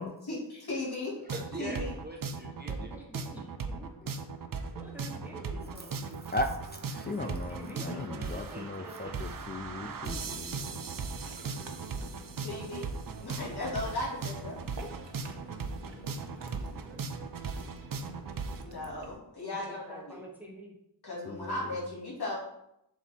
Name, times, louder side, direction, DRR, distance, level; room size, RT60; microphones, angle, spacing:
voice 1, 0.0-1.1 1.6-1.9 12.4-12.9 13.2-14.6 18.6-20.2 21.0-22.4, left 2 dB, 60° left, -5 dB, 2.5 m, -36 dB
voice 2, 1.2-2.9 5.5-5.7 7.9-8.7, right 2 dB, 20° right, -2 dB, 1.0 m, -43 dB
sound 1, 1.3-18.6, right 4 dB, 50° right, 0.6 m, -38 dB
voice 3, 2.7-3.9 4.7-6.0 7.0-9.3 11.3-11.4 19.5-20.8, right 2 dB, 5° right, -1 dB, 1.2 m, -47 dB
voice 4, 6.3-10.9 21.2-21.6, left 2 dB, 25° left, 4 dB, 0.4 m, -37 dB
Ocean, 9.0-19.1, right 2 dB, 75° right, 1.0 m, -49 dB
6.2 x 4.0 x 4.2 m, 0.80 s
wide cardioid pair, 105°, 43 cm